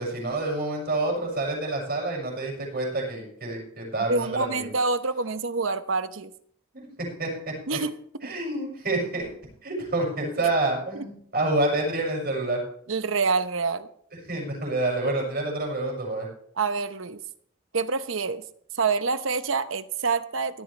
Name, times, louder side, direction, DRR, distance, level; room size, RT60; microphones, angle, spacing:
voice 1, 0.0-4.7 6.7-6.8 7.2-7.3 8.2-9.3 9.6-12.6 14.3-16.3, right 2 dB, 50° right, 0 dB, 6.3 m, -28 dB
voice 2, 4.1-6.3 7.7-7.9 10.9-11.0 12.9-13.9 16.6-17.2 17.7-18.4 18.7-20.6, right 4 dB, 75° right, 11 dB, 0.9 m, -26 dB
16.5 x 13.0 x 3.3 m, 0.63 s
head